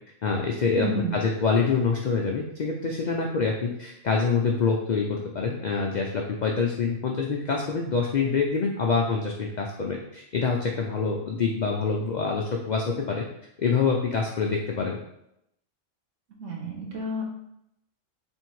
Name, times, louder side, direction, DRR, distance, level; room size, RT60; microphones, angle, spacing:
voice 1, 0.2-13.2 13.6-15.0, left 5 dB, 85° left, 0 dB, 0.4 m, -26 dB
voice 2, 0.8-1.1 16.4-17.2, right 2 dB, 70° right, -1 dB, 1.2 m, -30 dB
3.5 x 2.7 x 4.5 m, 0.80 s
omnidirectional pair, 1.4 m